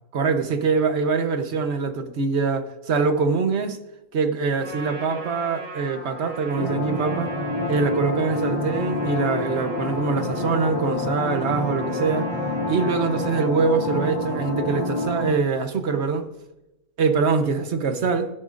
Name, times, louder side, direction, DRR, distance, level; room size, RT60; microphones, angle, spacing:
voice 1, 0.1-3.8 4.1-7.3 7.7-12.3 12.7-16.3 17.0-18.3, right 5 dB, 55° right, 7 dB, 1.2 m, -24 dB
Trumpet, 4.5-13.5, right 3 dB, 70° right, 3.9 m, -39 dB
sound 1, 6.6-15.3, left 2 dB, 50° left, 2.1 m, -27 dB
16.0 x 10.5 x 2.6 m, 0.93 s
omnidirectional pair, 1.4 m